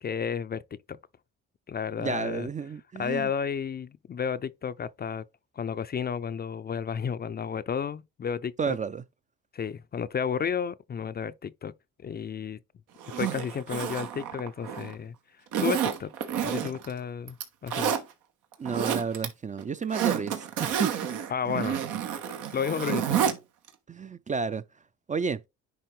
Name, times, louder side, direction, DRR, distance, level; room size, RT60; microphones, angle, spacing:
voice 1, 0.0-1.0 1.7-2.5 3.0-5.2 5.6-8.8 9.5-11.7 12.0-12.6 13.2-15.1 15.6-16.1 16.4-17.4 17.6-18.0 21.3-21.8 22.5-23.3, left 7 dB, 35° left, 0.4 m, -32 dB
voice 2, 2.0-3.3 8.6-9.0 18.6-21.1 23.9-24.6 25.1-25.4, right 5 dB, 25° right, 0.4 m, -31 dB
Zipper (clothing), 13.0-14.9 15.5-16.9 17.3-18.0 18.5-19.3 19.6-23.4 23.7-23.8, right 9 dB, 90° right, 1.4 m, -29 dB
10.5 x 3.5 x 3.1 m
cardioid pair, 90°, 30 cm